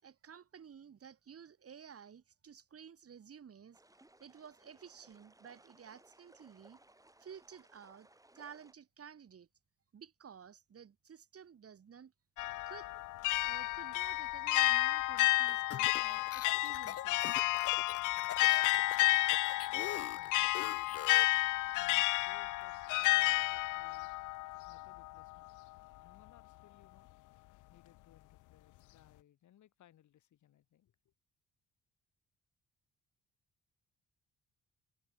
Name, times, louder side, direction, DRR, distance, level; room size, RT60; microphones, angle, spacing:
voice 1, 0.0-3.8 4.2-6.8 7.2-8.1 8.3-9.5 9.9-12.1 12.7-13.0 13.4-17.3, right 7 dB, 50° right, 5.6 m, -54 dB
sound 1, 3.7-8.7, right 1 dB, 10° right, 7.7 m, -64 dB
sound 2, 12.4-25.3, left 20 dB, 90° left, 0.6 m, -31 dB
sound 3, 15.5-21.4, left 10 dB, 50° left, 0.9 m, -44 dB
voice 2, 19.6-20.8 21.8-24.1 24.7-25.6 26.0-27.1 27.7-31.0, left 11 dB, 70° left, 7.0 m, -64 dB
cardioid pair, 90°, 30 cm